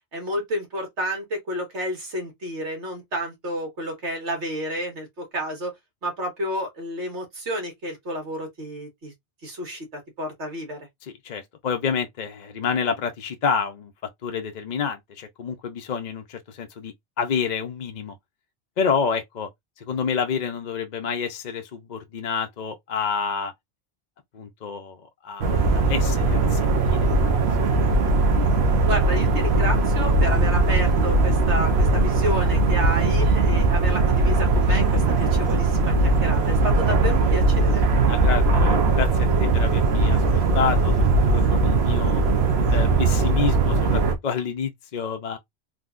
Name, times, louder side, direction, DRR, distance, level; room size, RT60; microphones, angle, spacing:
voice 1, 0.1-5.7 6.0-9.1 9.4-10.8 28.9-37.8, equal, 85° right, 1.9 m, -30 dB
voice 2, 11.0-13.9 14.2-18.2 18.8-19.5 19.8-23.5 24.3-27.4 38.1-42.2 42.7-45.4, left 6 dB, 50° left, 0.6 m, -29 dB
sound 1, 25.4-44.2, right 3 dB, 70° right, 1.0 m, -20 dB
3.8 x 2.7 x 2.4 m
omnidirectional pair, 1.2 m